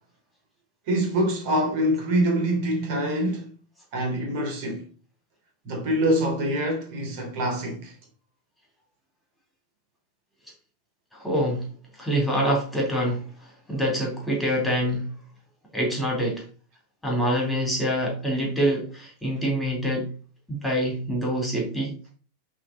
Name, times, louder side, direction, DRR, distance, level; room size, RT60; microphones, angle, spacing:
voice 1, 0.9-3.5 3.9-4.8 5.6-7.9, right 1 dB, 45° right, 2.9 m, -25 dB
voice 2, 11.1-11.7 12.0-15.1 15.7-16.4 17.0-20.1 20.5-21.9, equal, 5° left, 3.4 m, -25 dB
11.0 x 3.9 x 4.1 m
figure-of-eight pair, 90°, 0 cm